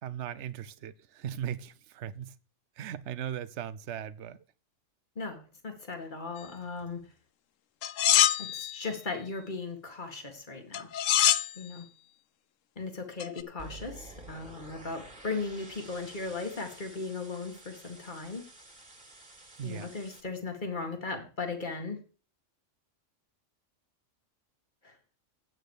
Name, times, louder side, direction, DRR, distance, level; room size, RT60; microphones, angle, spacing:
voice 1, 0.0-2.3 2.8-4.4 19.6-19.9, right 9 dB, 65° right, 1.0 m, -38 dB
voice 2, 5.2-7.1 8.4-10.9 11.6-11.9 12.8-18.5 19.6-22.0 24.8-25.0, left 4 dB, 40° left, 2.3 m, -37 dB
sound 1, 7.8-8.8 10.7-11.5 13.2-13.4, left 11 dB, 85° left, 1.0 m, -24 dB
sound 2, 13.6-20.2, right 2 dB, 35° right, 2.8 m, -50 dB
9.1 x 7.7 x 6.5 m
omnidirectional pair, 1.3 m